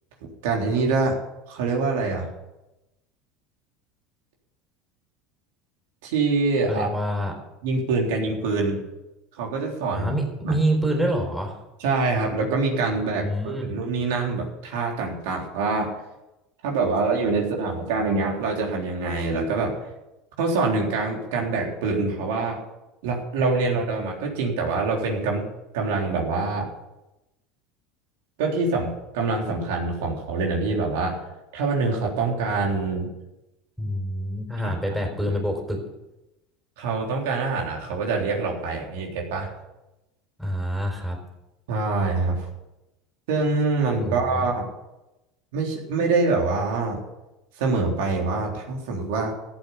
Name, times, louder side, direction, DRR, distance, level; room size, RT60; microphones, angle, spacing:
voice 1, 0.4-1.2 1.5-2.3 6.0-6.9 7.6-8.8 9.4-10.1 10.4-10.6 11.8-16.0 16.6-19.8 20.4-22.6 23.0-25.5 25.7-26.7 28.4-31.2 31.5-33.1 34.6-34.7 35.2-35.4 36.8-39.5 41.7-42.5 43.3-44.7 45.5-47.0 47.6-49.3, right 3 dB, 80° right, 0 dB, 3.6 m, -25 dB
voice 2, 6.7-7.3 9.9-11.6 13.1-13.7 33.8-35.8 40.4-41.2 44.0-44.5, right 1 dB, ahead, 0 dB, 4.1 m, -26 dB
14.5 x 8.1 x 8.5 m, 0.97 s
supercardioid pair, 120°, 0 cm